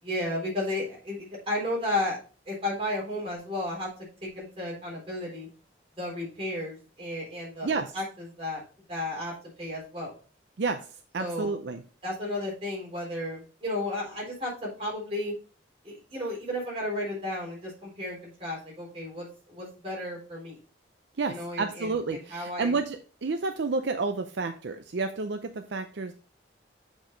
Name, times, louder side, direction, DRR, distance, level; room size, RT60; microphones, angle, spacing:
voice 1, 0.0-2.2 2.5-3.9 4.2-5.5 6.0-7.7 7.9-8.6 8.9-9.3 9.6-10.1 11.2-11.6 12.0-15.3 15.8-20.6 21.3-22.8, left 1 dB, 30° right, -4 dB, 3.8 m, -33 dB
voice 2, 11.1-11.8 21.2-26.1, right 4 dB, 70° right, 7 dB, 0.5 m, -30 dB
7.2 x 5.2 x 3.9 m, 0.37 s
head